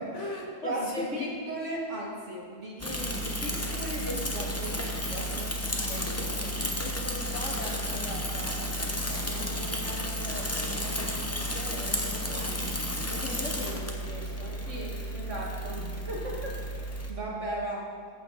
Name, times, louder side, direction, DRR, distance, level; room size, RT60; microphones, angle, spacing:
voice 1, 0.0-1.4 5.9-14.7 15.4-16.1, left 2 dB, 50° left, 0 dB, 1.5 m, -41 dB
voice 2, 0.6-5.5 14.7-15.8 16.1-16.7 17.1-17.9, right 1 dB, 50° right, -3 dB, 2.2 m, -36 dB
Bicycle / Mechanisms, 2.8-17.1, equal, 15° left, 0.6 m, -32 dB
14.5 x 8.3 x 4.1 m, 2.1 s
omnidirectional pair, 1.7 m